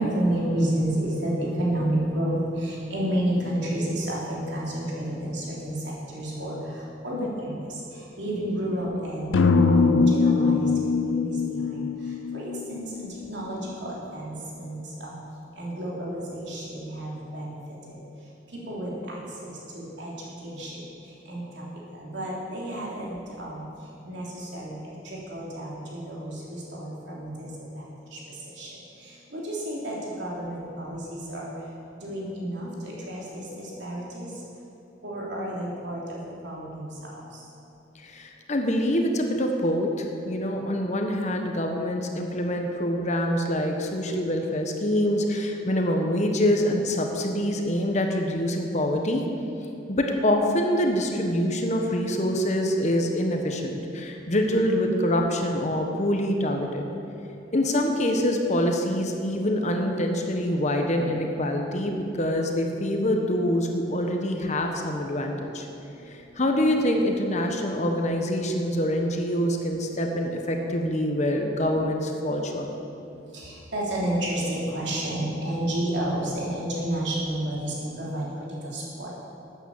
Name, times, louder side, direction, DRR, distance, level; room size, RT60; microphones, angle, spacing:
voice 1, 0.0-6.6 7.0-7.8 8.2-11.8 12.3-15.1 15.6-17.6 17.9-18.0 18.7-20.1 20.4-20.8 21.3-21.6 22.0-23.6 24.0-28.2 28.6-28.7 29.3-31.5 32.0-34.3 35.0-36.2 36.4-36.9 73.3-78.3 78.6-79.1, right 1 dB, 65° right, -4 dB, 3.3 m, -30 dB
sound 1, 9.3-13.5, left 4 dB, 80° left, 0.5 m, -22 dB
voice 2, 38.0-49.3 49.9-56.9 57.5-65.7 66.1-72.7, left 1 dB, 35° left, 3 dB, 1.2 m, -25 dB
12.5 x 9.1 x 7.3 m, 2.9 s
head